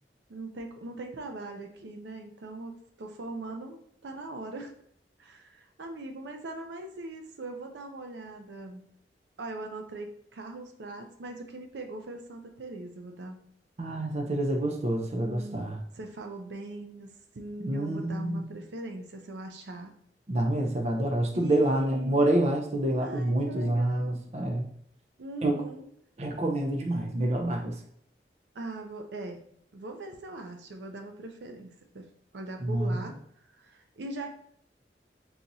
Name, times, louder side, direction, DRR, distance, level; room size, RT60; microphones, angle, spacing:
voice 1, 0.3-2.7 3.0-4.7 5.2-8.9 9.4-13.4 15.2-20.0 21.3-22.2 23.0-24.2 25.2-25.9 28.5-29.4 29.7-33.2 33.5-34.3, right 2 dB, 85° right, 4 dB, 0.5 m, -41 dB
voice 2, 13.8-15.8 17.6-18.4 20.3-24.7 25.4-25.6 26.2-27.8 32.6-33.0, right 1 dB, 40° right, 2 dB, 0.5 m, -27 dB
3.9 x 2.9 x 2.6 m, 0.69 s
head